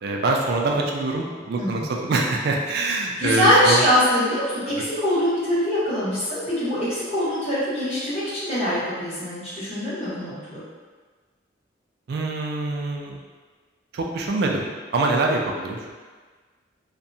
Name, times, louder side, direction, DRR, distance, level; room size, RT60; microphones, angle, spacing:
voice 1, 0.0-3.8 12.1-13.2 13.9-15.9, right 2 dB, 55° right, 0 dB, 0.3 m, -24 dB
voice 2, 3.2-10.6, equal, 35° left, -12 dB, 1.1 m, -23 dB
2.7 x 2.2 x 2.6 m, 1.4 s
head